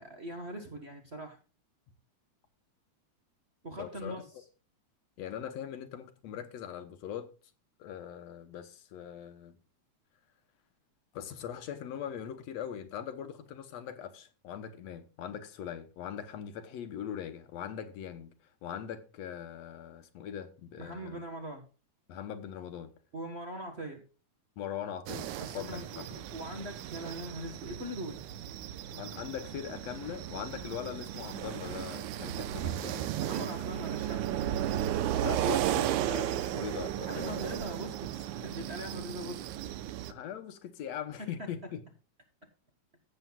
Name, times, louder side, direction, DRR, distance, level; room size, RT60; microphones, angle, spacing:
voice 1, 0.0-1.4 3.6-4.2 20.8-21.6 23.1-24.0 25.4-28.2 33.2-34.3 37.1-39.4 41.2-41.5, equal, 45° right, 0.8 m, -41 dB
voice 2, 3.8-4.2 5.2-7.3 7.8-9.6 11.1-21.2 22.1-22.9 24.6-26.2 28.9-33.3 33.6-33.7 35.2-37.5 40.1-41.8, left 9 dB, 70° left, 2.0 m, -41 dB
sound 1, 25.1-40.1, right 12 dB, 80° right, 2.1 m, -35 dB
15.0 x 7.8 x 2.3 m
omnidirectional pair, 3.5 m